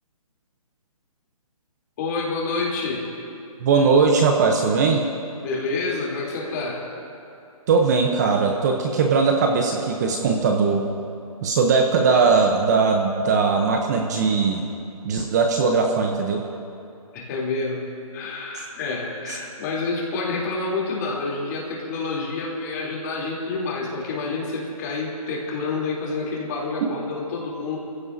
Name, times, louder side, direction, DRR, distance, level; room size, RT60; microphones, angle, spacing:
voice 1, 2.0-3.0 5.4-6.8 17.1-17.9 18.1-27.8, left 3 dB, 30° left, -3 dB, 3.4 m, -28 dB
voice 2, 3.6-5.0 7.7-10.9 11.4-14.6 15.0-16.4 18.5-18.6 19.3-19.4 26.8-26.9, right 4 dB, 30° right, 3 dB, 0.9 m, -20 dB
25.5 x 16.0 x 2.8 m, 2.8 s
hypercardioid pair, 160°, 19 cm